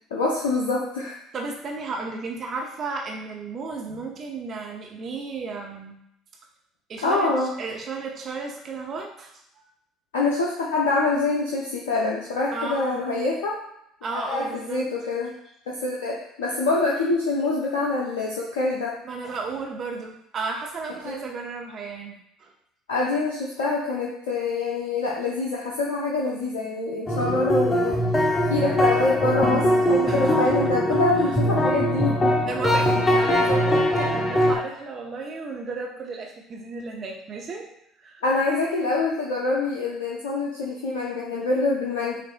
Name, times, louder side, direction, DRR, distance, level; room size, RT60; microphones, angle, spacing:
voice 1, 0.1-1.2 7.0-7.5 10.1-13.6 14.1-15.3 15.7-19.0 21.0-21.2 22.9-28.0 28.5-32.4 34.4-34.5 38.2-42.2, left 3 dB, 75° left, -3 dB, 0.6 m, -25 dB
voice 2, 1.3-6.0 6.9-7.3 7.6-9.4 12.5-13.0 14.0-14.9 19.0-22.5 30.1-30.4 32.5-37.7 38.0-38.2, right 4 dB, 40° right, 0 dB, 0.9 m, -33 dB
sound 1, 27.1-34.6, equal, 25° left, 0.7 m, -22 dB
6.1 x 2.6 x 2.3 m, 0.78 s
figure-of-eight pair, 60°, 0 cm